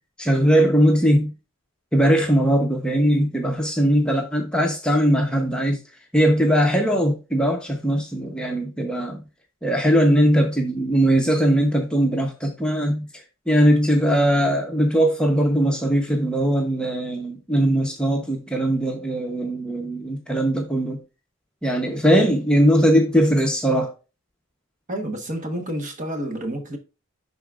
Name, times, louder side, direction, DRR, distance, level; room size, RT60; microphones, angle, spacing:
voice 1, 0.2-1.3 1.9-5.8 6.1-9.2 9.6-13.1 13.5-21.0 21.6-23.9, equal, 5° left, 0.8 m, -20 dB
voice 2, 24.9-26.8, right 1 dB, 40° right, 1.2 m, -29 dB
11.0 x 4.0 x 2.4 m
head